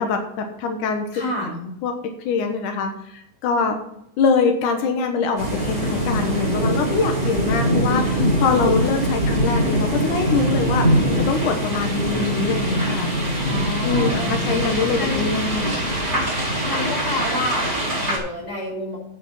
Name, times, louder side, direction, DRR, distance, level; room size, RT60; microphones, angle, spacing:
voice 1, 0.0-1.1 1.4-1.9 2.2-3.8 4.2-10.9 11.3-13.1 13.8-15.8, left 5 dB, 85° left, 5 dB, 2.7 m, -24 dB
voice 2, 1.1-1.5 13.5-15.2 16.6-19.0, left 1 dB, 20° left, -3 dB, 5.8 m, -29 dB
sound 1, 5.4-18.2, equal, 15° right, 4.1 m, -22 dB
9.7 x 8.7 x 5.6 m, 0.77 s
omnidirectional pair, 3.5 m